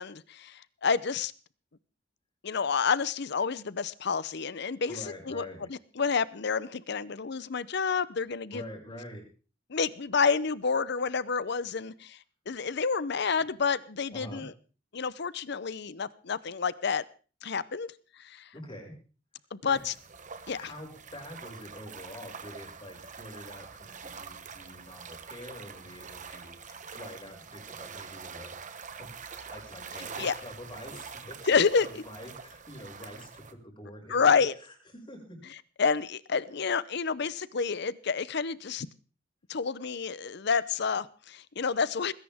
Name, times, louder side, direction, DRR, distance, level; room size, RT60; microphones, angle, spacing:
voice 1, 0.0-1.3 2.4-5.0 5.3-8.6 9.7-12.2 12.5-14.5 14.9-17.0 17.4-17.9 18.2-18.5 19.5-19.9 20.5-20.7 30.2-30.3 31.5-32.0 34.1-34.5 35.8-38.9 39.5-42.1, left 5 dB, 60° left, 18 dB, 0.7 m, -29 dB
voice 2, 4.9-5.6 8.5-9.2 14.1-14.4 18.5-18.9 19.6-19.8 20.6-28.7 28.9-34.2 35.1-35.4, left 1 dB, 25° left, 1 dB, 5.8 m, -46 dB
sound 1, 19.7-33.5, right 6 dB, 40° right, 1.3 m, -45 dB
20.0 x 17.0 x 3.6 m, 0.37 s
head